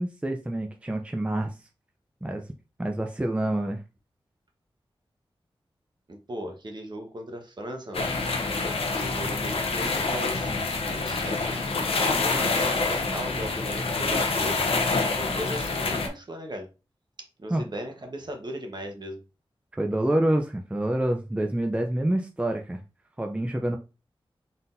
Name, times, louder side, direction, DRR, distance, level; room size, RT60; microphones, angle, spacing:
voice 1, 0.0-1.5 2.2-2.4 2.8-3.8 17.5-17.6 19.7-22.8 23.2-23.8, right 1 dB, 15° right, 4 dB, 0.5 m, -27 dB
voice 2, 6.1-8.1 8.9-10.5 10.9-14.6 15.2-16.7 17.4-19.2, equal, 50° right, 3 dB, 1.1 m, -37 dB
sound 1, 7.9-16.1, left 3 dB, 85° left, 0.7 m, -27 dB
4.1 x 3.8 x 2.6 m, 0.30 s
wide cardioid pair, 65°, 10 cm